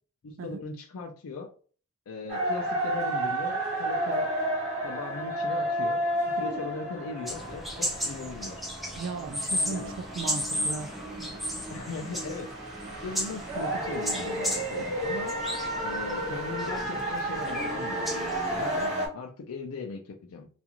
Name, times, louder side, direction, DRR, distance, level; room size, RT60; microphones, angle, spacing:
voice 1, 0.2-1.5 2.1-4.3 4.8-6.0 6.4-8.7 9.7-9.9 11.7-12.5 12.9-15.3 15.8-18.1 18.5-20.5, left 4 dB, 70° left, 0.4 m, -39 dB
sound 1, 2.3-19.1, right 1 dB, 30° right, 1.2 m, -32 dB
sound 2, 7.3-18.9, equal, ahead, 0.4 m, -35 dB
voice 2, 9.0-10.9, right 4 dB, 60° right, 0.3 m, -36 dB
2.4 x 2.4 x 2.8 m
head